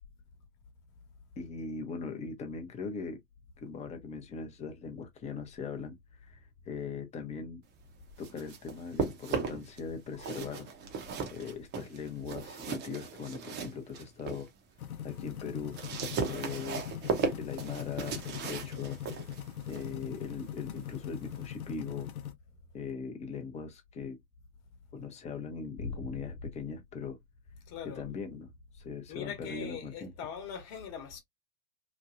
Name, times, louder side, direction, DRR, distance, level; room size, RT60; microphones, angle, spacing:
voice 1, 1.4-3.2 3.6-6.0 6.2-6.4 6.7-7.6 8.2-10.7 11.3-14.5 15.0-15.8 16.2-16.8 17.4-19.0 19.7-22.1 22.7-24.2 24.9-27.2 27.8-30.1, left 5 dB, 15° left, 0.6 m, -40 dB
sound 1, 8.0-9.8 10.1-14.5 14.9-21.5, right 5 dB, 25° right, 0.7 m, -37 dB
sound 2, 14.8-22.3, left 10 dB, 80° left, 0.7 m, -41 dB
voice 2, 25.8-26.2 27.7-28.0 29.1-31.2, left 6 dB, 40° left, 1.1 m, -41 dB
3.0 x 2.2 x 2.4 m
hypercardioid pair, 110°, 43 cm